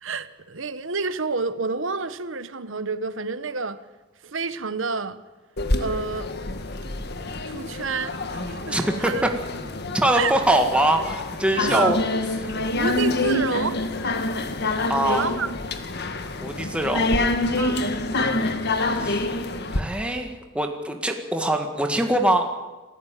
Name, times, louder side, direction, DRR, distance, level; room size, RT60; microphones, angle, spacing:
voice 1, 0.0-3.8 4.2-5.2 5.8-6.3 7.0-7.1 7.4-9.3 10.1-10.4 11.5-11.9 12.7-13.8 15.0-15.5 17.6-17.9, right 4 dB, 65° right, 12 dB, 1.3 m, -29 dB
sound 1, 5.6-19.8, left 2 dB, 55° left, 1.8 m, -27 dB
voice 2, 8.7-9.3 9.9-12.0 12.4-12.6 14.9-15.2 16.4-17.0 18.9-19.3 19.7-22.5, right 1 dB, 5° right, 3 dB, 1.9 m, -23 dB
28.0 x 15.0 x 9.2 m, 1.2 s
head